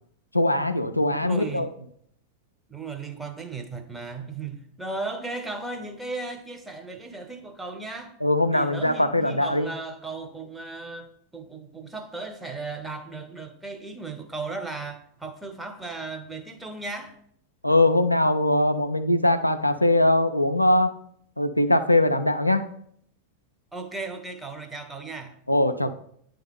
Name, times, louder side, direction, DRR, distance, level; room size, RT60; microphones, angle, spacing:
voice 1, 0.3-1.7 8.2-9.7 17.6-20.9 21.4-22.6 25.5-25.9, left 1 dB, 85° left, 0.4 m, -21 dB
voice 2, 1.2-1.7 2.7-8.1 8.5-17.2 23.7-25.3, right 3 dB, 5° right, 0.8 m, -36 dB
9.4 x 3.5 x 3.6 m
figure-of-eight pair, 90°, 0 cm